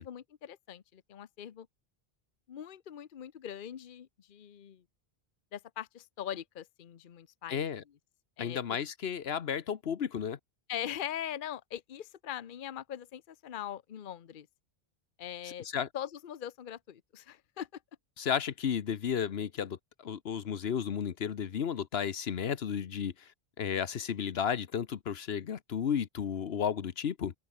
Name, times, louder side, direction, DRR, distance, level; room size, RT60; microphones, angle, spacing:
voice 1, 0.0-1.7 2.5-4.8 5.5-7.7 8.4-8.8 10.7-14.5 15.2-15.7 15.9-17.8, left 10 dB, 55° left, 0.9 m, -41 dB
voice 2, 7.5-7.8 8.4-10.4 15.7-15.9 18.2-23.3 23.6-27.3, left 8 dB, 80° left, 1.2 m, -33 dB
open air
omnidirectional pair, 1.0 m